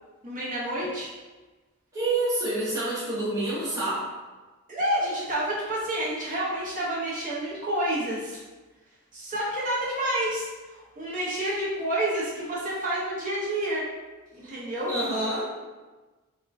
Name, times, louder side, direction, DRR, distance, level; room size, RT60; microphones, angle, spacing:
voice 1, 0.2-1.1 4.7-8.4 9.1-13.8 14.3-14.9, right 1 dB, 35° right, -7 dB, 1.0 m, -29 dB
voice 2, 1.9-4.1 14.9-15.7, right 2 dB, 15° right, -10 dB, 0.9 m, -28 dB
3.7 x 2.4 x 3.3 m, 1.2 s
head